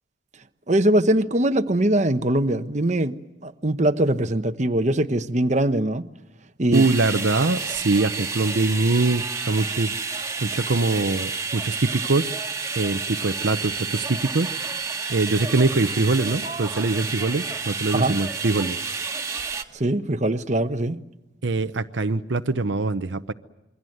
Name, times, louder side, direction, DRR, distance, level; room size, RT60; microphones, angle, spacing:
voice 1, 0.7-6.1 6.6-6.8 17.9-18.2 19.7-21.0, right 1 dB, 35° right, 1.0 m, -22 dB
sound 1, 6.7-19.6, right 4 dB, 15° right, 1.7 m, -30 dB
voice 2, 6.7-10.0 10.4-12.4 12.8-14.5 15.1-18.8 21.4-23.3, right 3 dB, 70° right, 0.8 m, -23 dB
27.5 x 23.0 x 7.9 m
head